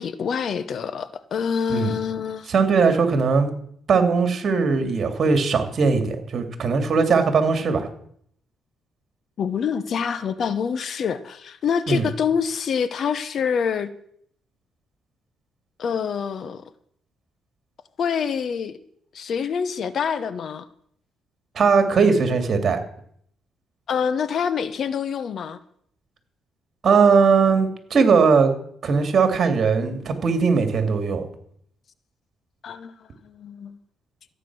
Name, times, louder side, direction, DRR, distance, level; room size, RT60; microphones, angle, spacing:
voice 1, 0.0-2.5 9.4-13.9 15.8-16.6 18.0-18.7 19.1-20.7 23.9-25.6 32.6-32.9 33.2-33.8, left 7 dB, 55° left, 0.9 m, -26 dB
voice 2, 2.5-3.5 3.9-7.9 11.9-12.1 21.5-22.8 26.8-28.5 28.8-31.2, right 5 dB, 50° right, 2.7 m, -19 dB
14.5 x 9.1 x 6.2 m
cardioid pair, 90°, 0 cm